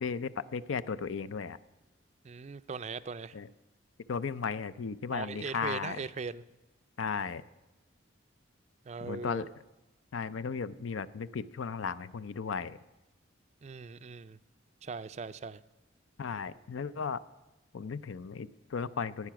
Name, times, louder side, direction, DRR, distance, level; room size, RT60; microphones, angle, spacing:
voice 1, 0.0-1.6 3.3-3.5 4.1-6.0 7.0-7.4 9.0-9.5 10.1-12.8 16.2-17.2 17.7-19.3, left 5 dB, 75° left, 16 dB, 0.5 m, -35 dB
voice 2, 2.2-3.4 5.1-6.4 8.9-9.5 13.6-14.4 14.8-15.6, right 4 dB, 35° right, 14 dB, 0.3 m, -39 dB
15.0 x 9.8 x 5.9 m, 1.1 s
head